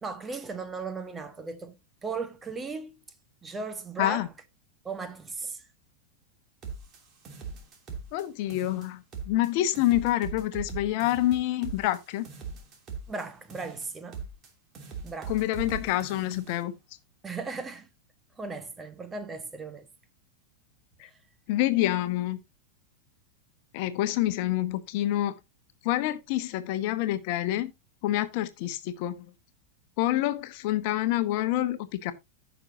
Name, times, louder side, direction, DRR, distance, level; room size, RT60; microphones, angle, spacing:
voice 1, 0.0-1.7 2.0-3.0 3.4-4.3 4.8-5.6 7.9-8.0 13.1-14.2 15.0-15.3 17.2-17.9 18.4-19.9, right 4 dB, 15° right, 1.5 m, -36 dB
sound 1, 6.6-8.2 8.5-9.5 9.7-13.2 13.5-14.5 14.7-16.6, right 5 dB, 30° right, 2.9 m, -41 dB
voice 2, 8.1-12.2 15.3-16.7 21.0-21.1 21.5-22.4 23.7-25.4 25.8-27.7 28.0-29.3 30.0-32.1, left 14 dB, 45° left, 1.1 m, -27 dB
15.0 x 6.4 x 2.8 m
figure-of-eight pair, 90°, 0 cm